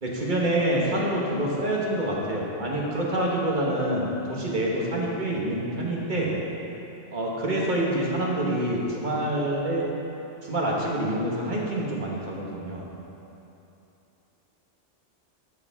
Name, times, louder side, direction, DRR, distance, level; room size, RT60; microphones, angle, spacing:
voice 1, 0.0-6.3 7.1-9.9 10.4-12.8, right 1 dB, 40° right, -3 dB, 1.3 m, -26 dB
14.0 x 5.0 x 3.5 m, 2.8 s
omnidirectional pair, 1.3 m